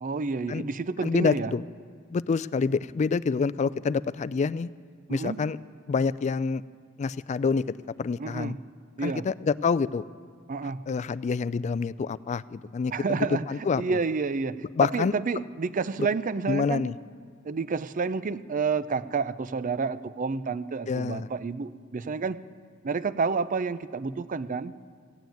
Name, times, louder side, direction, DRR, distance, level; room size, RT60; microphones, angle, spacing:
voice 1, 0.0-1.5 5.1-5.4 8.2-8.6 9.0-9.3 10.5-10.8 12.9-16.8 17.4-22.4 22.8-24.7, right 4 dB, 40° right, 15 dB, 0.4 m, -29 dB
voice 2, 1.0-1.6 2.1-4.7 5.1-5.6 5.9-6.6 7.0-8.6 9.0-10.0 10.9-14.0 14.7-15.1 16.0-16.1 16.5-16.9 20.9-21.3, left 5 dB, 35° left, 18 dB, 0.3 m, -27 dB
16.0 x 9.4 x 9.1 m, 2.1 s
head